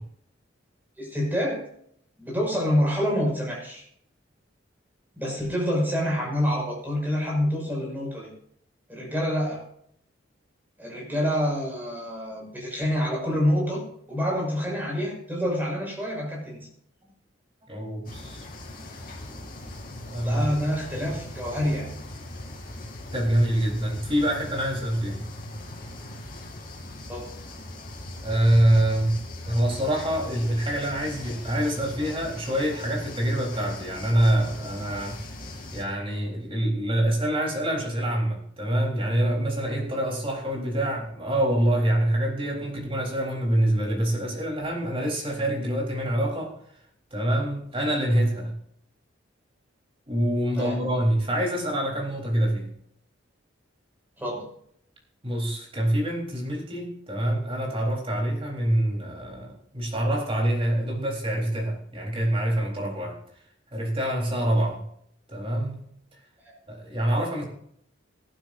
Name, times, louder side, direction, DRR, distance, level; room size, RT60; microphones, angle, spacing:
voice 1, 1.0-1.6 2.2-3.8 5.2-8.3 8.9-9.6 10.8-13.8 14.1-16.7 20.2-21.9 27.1-27.3 50.5-50.8 54.2-54.5 66.4-66.5, equal, 10° right, -2 dB, 5.7 m, -27 dB
voice 2, 17.7-18.4 20.0-20.5 23.1-25.2 28.2-35.3 35.7-46.5 47.1-48.5 50.1-52.7 55.2-63.2 63.7-64.8 65.3-65.8 66.7-67.4, right 1 dB, 30° right, -2 dB, 3.8 m, -25 dB
sound 1, 18.0-35.8, left 1 dB, 50° left, 2.8 m, -39 dB
18.0 x 12.0 x 2.6 m, 0.69 s
head